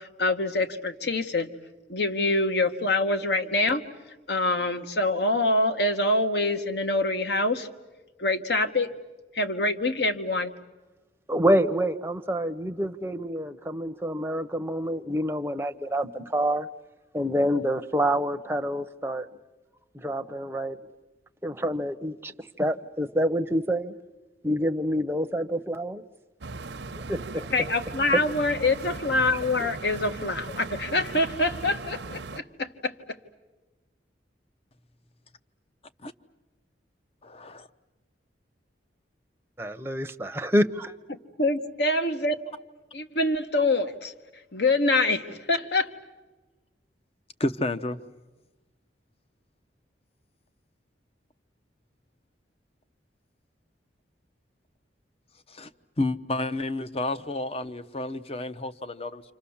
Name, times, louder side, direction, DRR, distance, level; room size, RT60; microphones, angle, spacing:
voice 1, 0.0-1.5 1.9-3.8 4.3-7.7 8.2-8.9 9.3-10.5 27.5-32.9 41.1-42.5 42.9-44.1 44.5-45.9, left 2 dB, 60° left, 8 dB, 1.4 m, -25 dB
voice 2, 11.3-16.7 17.1-19.3 19.9-20.8 21.4-23.9 24.4-26.0 27.0-27.5 29.6-29.7 39.6-40.9, equal, 15° right, 7 dB, 0.8 m, -27 dB
sound 1, 26.4-32.4, right 3 dB, 70° right, 0.8 m, -38 dB
voice 3, 37.2-37.7 47.4-48.0 55.5-55.7 56.0-59.2, left 2 dB, 35° left, 12 dB, 0.8 m, -30 dB
28.5 x 26.5 x 7.2 m, 1.2 s
head